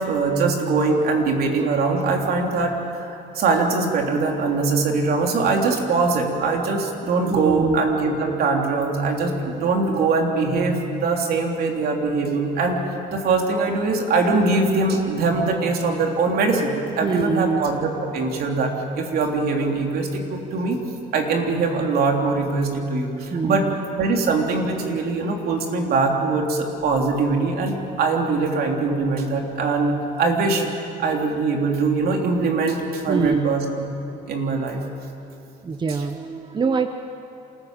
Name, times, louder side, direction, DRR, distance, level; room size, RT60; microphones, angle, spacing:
voice 1, 0.0-12.8 13.1-20.8 21.1-23.6 24.0-30.6 31.0-33.6 34.3-34.8, right 3 dB, 65° right, 2 dB, 3.4 m, -22 dB
voice 2, 7.3-7.8 17.0-17.6 23.3-23.8 33.1-33.5 35.6-36.9, right 5 dB, 25° right, 8 dB, 0.9 m, -24 dB
27.5 x 14.5 x 8.9 m, 2.9 s
cardioid pair, 110°, 17 cm